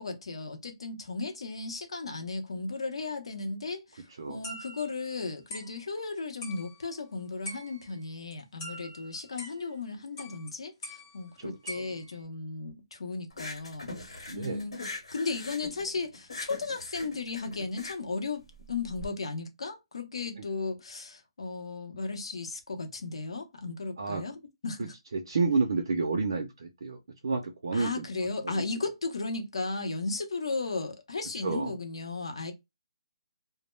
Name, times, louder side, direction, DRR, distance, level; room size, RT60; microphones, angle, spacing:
voice 1, 0.0-14.8 15.1-18.4 18.7-24.9 27.7-32.5, left 3 dB, 70° left, 0.7 m, -35 dB
sound 1, 4.4-5.2 5.5-5.8 6.4-7.0 7.5-8.1 8.3-9.8 10.2-10.5 10.8-12.2, equal, 15° left, 0.5 m, -44 dB
voice 2, 11.4-12.0 14.3-14.6 20.4-20.5 24.0-24.2 25.1-28.0 28.4-28.6 31.4-31.7, right 4 dB, 50° right, 0.4 m, -30 dB
sound 2, 13.3-19.1, left 2 dB, 90° left, 1.0 m, -42 dB
2.1 x 2.0 x 3.0 m
hypercardioid pair, 180°, 3 cm